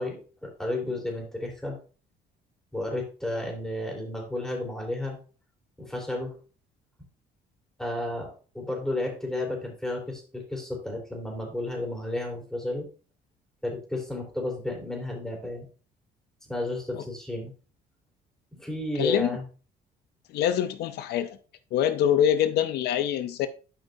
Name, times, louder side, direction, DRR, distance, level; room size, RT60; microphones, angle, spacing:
voice 1, 0.0-1.8 2.7-5.2 5.8-6.4 7.8-12.9 13.6-15.6 16.5-17.5 18.5-19.4, left 1 dB, 5° left, 3.7 m, -32 dB
voice 2, 19.0-19.3 20.3-21.4 21.7-23.5, left 10 dB, 75° left, 0.6 m, -24 dB
11.5 x 5.4 x 2.7 m
cardioid pair, 110°, 17 cm